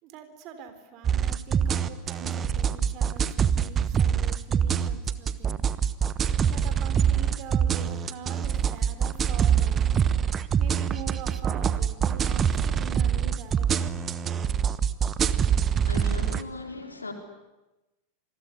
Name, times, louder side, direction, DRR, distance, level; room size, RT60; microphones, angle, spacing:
voice 1, 0.0-5.6 6.5-9.9 10.6-14.0, right 7 dB, 40° right, 9 dB, 3.9 m, -43 dB
sound 1, 1.0-16.4, right 8 dB, 25° right, 1.1 m, -25 dB
voice 2, 15.9-17.1, left 3 dB, 80° left, 5 dB, 4.0 m, -37 dB
27.5 x 21.0 x 9.9 m, 1.0 s
figure-of-eight pair, 90°, 0 cm